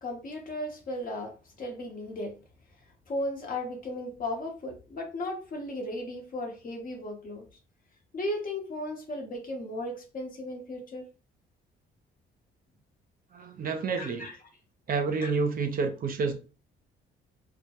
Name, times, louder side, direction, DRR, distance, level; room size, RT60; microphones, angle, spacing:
voice 1, 0.0-2.3 3.1-7.5 8.1-11.1 13.7-14.4 15.2-15.3, left 1 dB, 45° left, 0.8 m, -36 dB
voice 2, 13.3-14.3 14.9-16.4, right 4 dB, 45° right, 0.5 m, -29 dB
2.1 x 2.1 x 2.8 m
cardioid pair, 90°, 20 cm